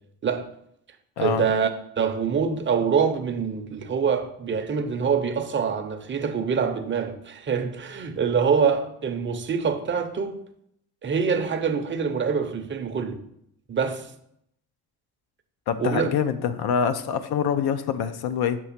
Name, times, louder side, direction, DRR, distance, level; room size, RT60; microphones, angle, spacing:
voice 1, 1.2-1.7 2.0-10.4 11.0-13.2 13.7-14.1 15.8-16.1, right 6 dB, 30° right, 0.6 m, -25 dB
voice 2, 15.7-18.6, left 7 dB, 75° left, 0.5 m, -25 dB
6.2 x 3.2 x 5.7 m
cardioid pair, 145°, 39 cm